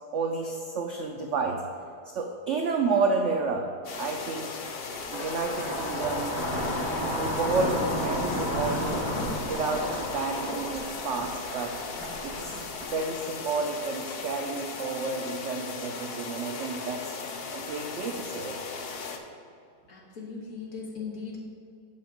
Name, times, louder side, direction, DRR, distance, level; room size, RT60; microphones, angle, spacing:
voice 1, 0.1-1.6 2.1-3.7 3.9-4.6 5.1-6.4 7.2-9.1 9.4-11.7 12.2-12.6 12.9-17.1 17.5-18.6, right 4 dB, 75° right, 3 dB, 0.6 m, -30 dB
sound 1, 3.8-19.2, left 4 dB, 85° left, 0.5 m, -37 dB
sound 2, 4.9-13.2, equal, 35° left, 2.2 m, -32 dB
voice 2, 19.9-21.4, left 5 dB, 55° left, -3 dB, 1.6 m, -38 dB
6.0 x 5.9 x 5.0 m, 2.5 s
omnidirectional pair, 1.8 m